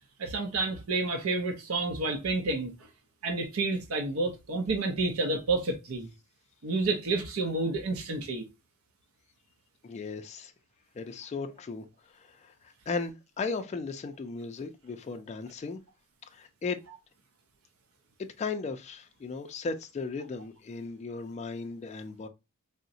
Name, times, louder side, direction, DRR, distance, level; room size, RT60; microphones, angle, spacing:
voice 1, 0.2-2.7 3.2-6.1 6.6-8.5, right 3 dB, 75° right, 0.6 m, -29 dB
voice 2, 9.8-10.5 11.0-15.8 16.3-16.8 18.4-22.3, left 4 dB, 30° left, 0.3 m, -36 dB
3.7 x 2.0 x 2.6 m
head